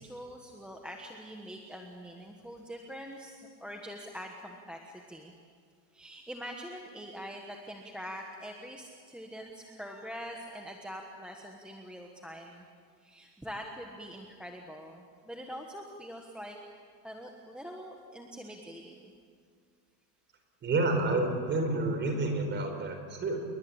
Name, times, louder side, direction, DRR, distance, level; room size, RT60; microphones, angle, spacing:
voice 1, 0.0-5.3 5.9-12.7 13.0-16.6 17.0-19.1, equal, ahead, 1 dB, 1.3 m, -44 dB
voice 2, 20.6-23.4, right 2 dB, 20° right, 5 dB, 4.5 m, -29 dB
29.0 x 22.5 x 8.8 m, 2.1 s
supercardioid pair, 165°, 50 cm